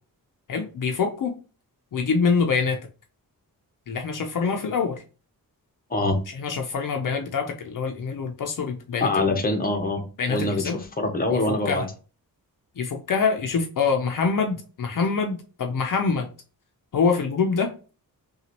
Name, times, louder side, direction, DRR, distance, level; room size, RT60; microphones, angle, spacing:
voice 1, 0.5-1.3 1.9-2.8 3.9-5.0 6.4-9.4 10.2-10.8 11.3-11.9 12.8-16.3 16.9-17.7, left 5 dB, 60° left, 4 dB, 0.6 m, -25 dB
voice 2, 9.0-10.0 10.3-11.8, left 2 dB, 25° left, 4 dB, 0.8 m, -24 dB
5.7 x 2.4 x 2.9 m, 0.36 s
wide cardioid pair, 145°, 36 cm